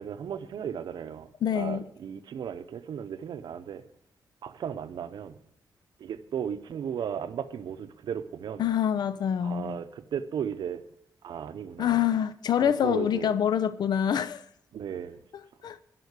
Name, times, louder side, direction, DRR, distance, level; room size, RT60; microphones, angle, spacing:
voice 1, 0.0-1.3 1.5-3.8 4.4-5.4 6.0-8.7 9.4-10.8 11.2-12.0 12.6-13.3 14.7-15.2, right 8 dB, 90° right, 0.7 m, -35 dB
voice 2, 1.4-1.9 8.6-9.8 11.8-14.4 15.6-15.8, left 9 dB, 75° left, 0.4 m, -26 dB
12.0 x 5.8 x 8.1 m
wide cardioid pair, 145°, 7 cm